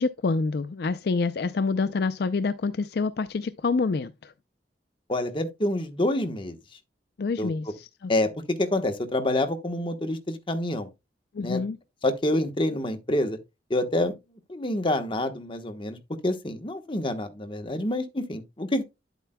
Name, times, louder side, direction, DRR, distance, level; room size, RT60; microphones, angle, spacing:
voice 1, 0.0-4.3 7.2-8.1 11.3-11.8, left 4 dB, 60° left, 0.4 m, -27 dB
voice 2, 5.1-6.6 7.4-7.7 8.1-10.9 11.4-11.6 12.0-13.4 13.7-14.1 14.5-16.0 16.2-18.8, left 1 dB, 30° left, 1.1 m, -27 dB
10.0 x 8.0 x 2.2 m
head